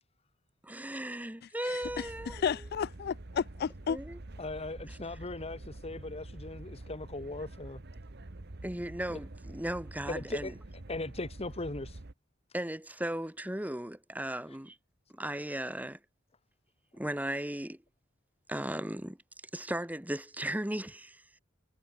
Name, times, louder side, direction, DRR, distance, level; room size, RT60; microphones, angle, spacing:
voice 1, 0.6-2.4 3.9-4.2 4.9-5.0 8.6-10.5 12.5-14.8 15.1-16.0 16.9-17.8 18.5-19.2 19.5-21.2, right 1 dB, 10° right, 1.6 m, -36 dB
voice 2, 1.6-4.0, left 7 dB, 50° left, 0.3 m, -33 dB
sound 1, 1.8-12.1, right 2 dB, 55° right, 1.2 m, -47 dB
voice 3, 4.4-7.8 9.1-9.2 10.1-10.5 10.9-12.0 14.5-14.6, left 2 dB, 30° left, 1.3 m, -39 dB
head